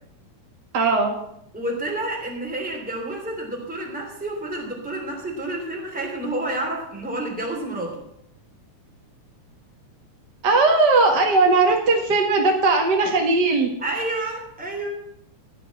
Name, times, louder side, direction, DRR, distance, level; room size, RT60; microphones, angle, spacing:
voice 1, 0.7-1.2 10.4-13.7, right 3 dB, 40° right, 2 dB, 1.9 m, -18 dB
voice 2, 1.5-8.0 13.8-14.9, right 1 dB, 5° right, 0 dB, 2.8 m, -29 dB
15.0 x 6.2 x 8.5 m, 0.76 s
omnidirectional pair, 3.5 m